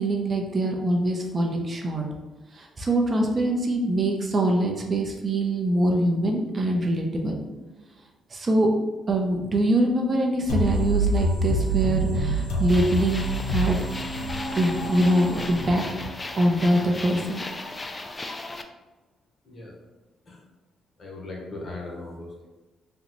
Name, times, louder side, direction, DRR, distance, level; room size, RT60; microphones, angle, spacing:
voice 1, 0.0-2.0 2.5-7.4 8.3-8.7 9.1-13.8 14.6-15.8 16.3-17.4, right 1 dB, 35° right, 1 dB, 0.5 m, -24 dB
sound 1, 10.5-16.1, right 1 dB, 85° left, 0.6 m, -27 dB
sound 2, 12.7-18.6, left 2 dB, 25° left, 0.3 m, -36 dB
voice 2, 19.4-19.8 20.3-20.4 21.0-22.5, left 2 dB, 40° left, -2 dB, 1.0 m, -38 dB
3.7 x 2.1 x 2.9 m, 1.2 s
cardioid pair, 90°, 0 cm